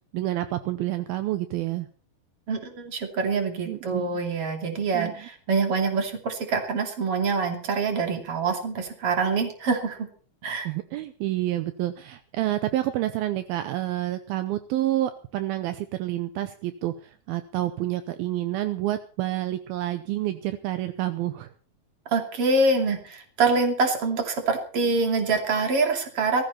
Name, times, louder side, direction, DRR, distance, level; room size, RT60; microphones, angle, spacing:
voice 1, 0.1-1.9 3.7-4.2 4.9-5.3 10.7-21.5, right 14 dB, 80° right, 11 dB, 2.2 m, -29 dB
voice 2, 2.5-10.1 10.4-10.7 22.1-26.4, right 3 dB, 35° right, 5 dB, 3.1 m, -25 dB
18.0 x 15.0 x 4.3 m, 0.40 s
omnidirectional pair, 5.2 m